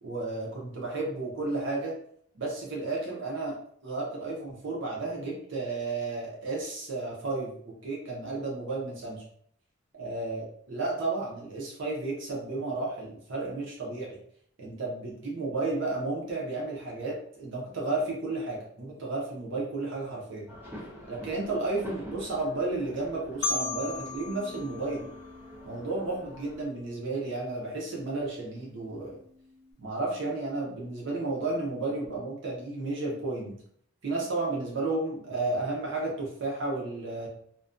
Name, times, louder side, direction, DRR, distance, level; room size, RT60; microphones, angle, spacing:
voice 1, 0.0-1.9 2.3-3.5 3.8-9.2 10.0-14.1 14.6-20.5 21.1-25.1 25.6-29.2 29.8-33.5 34.0-37.3, right 2 dB, 65° right, -3 dB, 0.6 m, -32 dB
sound 1, 20.5-26.7, left 1 dB, 10° right, 0.4 m, -47 dB
Marimba xylophone, 23.4-26.3, left 5 dB, 55° left, 0.3 m, -36 dB
Bass guitar, 23.5-29.7, left 2 dB, 30° right, 1.2 m, -51 dB
2.4 x 2.2 x 2.4 m, 0.64 s
head